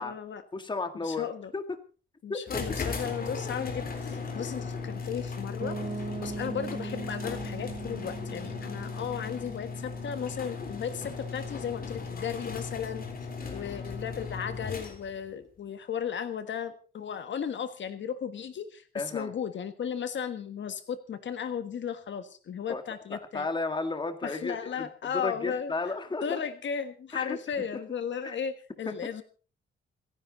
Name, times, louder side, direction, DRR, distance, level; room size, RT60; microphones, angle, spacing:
voice 1, 0.0-0.4 1.0-1.5 2.2-13.0 13.5-23.5 24.2-25.7 26.2-29.2, left 7 dB, 60° left, 9 dB, 1.5 m, -35 dB
voice 2, 0.5-1.8 2.3-2.6 13.4-13.7 18.9-19.3 22.7-22.8 23.1-26.4 27.1-27.4 28.2-28.4 28.9-29.1, left 3 dB, 20° left, 8 dB, 1.8 m, -34 dB
sound 1, 2.5-15.3, left 4 dB, 45° left, 3.7 m, -37 dB
Piano, 5.6-11.3, right 5 dB, 40° right, 4.0 m, -41 dB
27.5 x 10.5 x 4.0 m, 0.39 s
wide cardioid pair, 140°, 21 cm